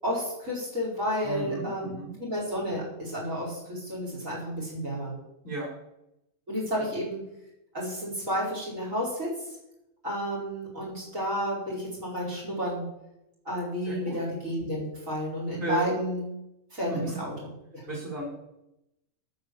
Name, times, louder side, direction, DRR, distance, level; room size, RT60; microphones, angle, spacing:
voice 1, 0.0-5.2 6.5-7.2 7.7-9.3 10.0-12.9 13.5-16.3 16.7-17.3 17.7-17.8, equal, 65° right, -1 dB, 5.3 m, -31 dB
voice 2, 1.2-2.1 5.4-5.7 13.9-14.2 15.6-15.9 16.9-17.2 17.9-18.3, right 3 dB, 35° right, -4 dB, 5.3 m, -33 dB
17.0 x 6.8 x 7.5 m, 0.88 s
omnidirectional pair, 1.5 m